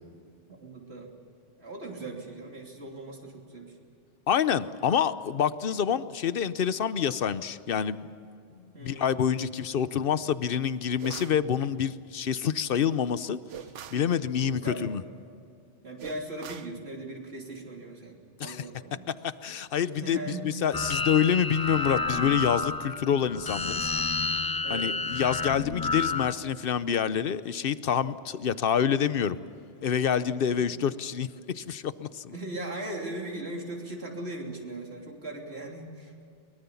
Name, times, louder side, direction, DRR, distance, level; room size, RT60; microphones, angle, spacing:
voice 1, 0.6-1.1 1.6-3.7 8.7-9.2 14.4-14.9 15.8-19.1 20.0-20.6 24.6-24.9 30.4-30.7 32.3-36.1, right 2 dB, 60° right, 0 dB, 3.4 m, -39 dB
voice 2, 4.3-8.0 8.8-13.4 13.9-15.0 18.4-18.6 19.1-19.2 19.4-20.2 20.4-23.9 24.7-29.4 29.8-31.3 31.5-32.3, left 8 dB, 55° left, 14 dB, 0.9 m, -27 dB
sound 1, 11.0-11.4 13.5-14.1 16.0-16.8, right 8 dB, 75° right, 1.1 m, -42 dB
sound 2, 20.7-26.3, left 3 dB, 25° left, 0.6 m, -30 dB
23.0 x 21.5 x 7.1 m, 2.5 s
omnidirectional pair, 1.2 m